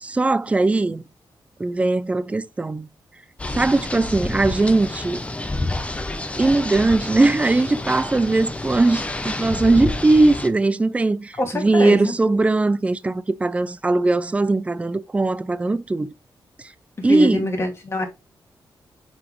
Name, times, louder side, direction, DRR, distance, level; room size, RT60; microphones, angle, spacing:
voice 1, 0.0-1.0 1.6-2.9 3.5-5.2 6.4-16.1 17.0-17.5, right 2 dB, 15° right, 0.4 m, -19 dB
sound 1, 3.4-10.5, left 2 dB, 15° left, 0.7 m, -29 dB
voice 2, 11.4-12.1 17.1-18.1, left 1 dB, 30° left, 2.2 m, -24 dB
7.5 x 4.2 x 3.1 m
wide cardioid pair, 150°, 8 cm